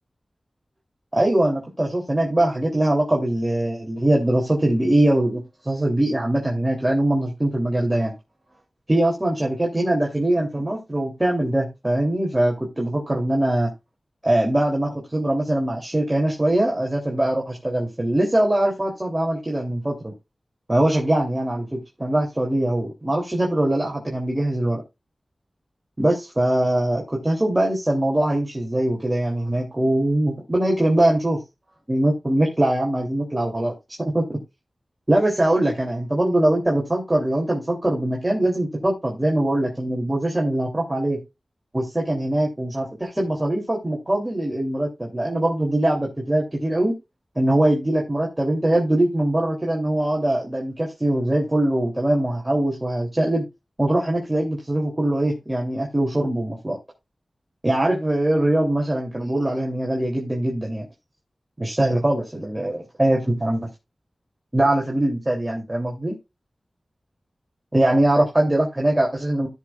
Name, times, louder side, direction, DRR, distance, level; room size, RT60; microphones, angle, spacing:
voice 1, 1.1-8.1 8.9-13.7 14.2-20.1 20.7-24.8 26.0-31.4 31.9-33.7 34.0-34.4 35.1-41.2 41.7-46.9 47.3-53.5 53.8-56.8 57.6-60.9 61.6-63.7 64.5-66.2 67.7-69.5, right 1 dB, 20° right, -1 dB, 3.2 m, -22 dB
16.0 x 6.7 x 2.4 m, 0.24 s
cardioid pair, 50°, 0 cm